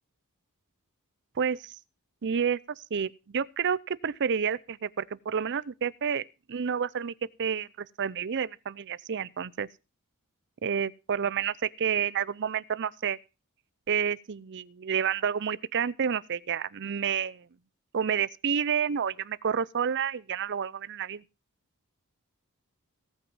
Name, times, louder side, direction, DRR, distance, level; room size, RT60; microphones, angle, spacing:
voice 1, 1.4-1.8 2.2-7.1 7.4-9.7 10.6-13.2 13.9-17.5 17.9-21.2, right 7 dB, 55° right, 0.5 m, -29 dB
17.5 x 6.0 x 5.5 m
head